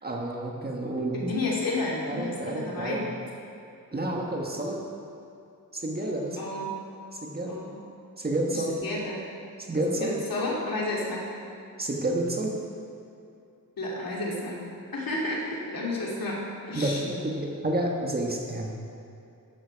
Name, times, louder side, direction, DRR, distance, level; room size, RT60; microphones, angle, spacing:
voice 1, 0.0-1.2 2.1-3.0 3.9-4.8 5.7-6.4 7.1-7.6 8.2-8.8 9.6-10.2 11.8-12.6 16.7-18.7, right 1 dB, 25° right, -1 dB, 1.5 m, -29 dB
voice 2, 1.1-3.1 6.4-6.7 7.5-7.8 8.5-9.2 10.0-11.3 13.8-14.7 14.9-17.0, left 2 dB, 70° left, -3 dB, 2.7 m, -31 dB
14.0 x 10.5 x 4.7 m, 2.6 s
wide cardioid pair, 160°, 35 cm